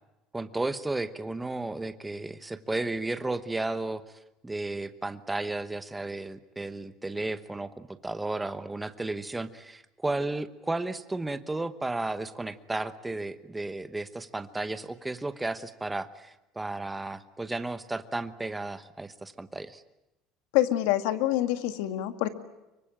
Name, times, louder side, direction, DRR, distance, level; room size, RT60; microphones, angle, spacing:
voice 1, 0.3-4.0 4.4-19.8, right 2 dB, 10° right, 12 dB, 1.0 m, -33 dB
voice 2, 20.5-22.3, left 14 dB, 85° left, 10 dB, 2.0 m, -26 dB
25.0 x 24.0 x 8.9 m, 0.95 s
cardioid pair, 170°, 0 cm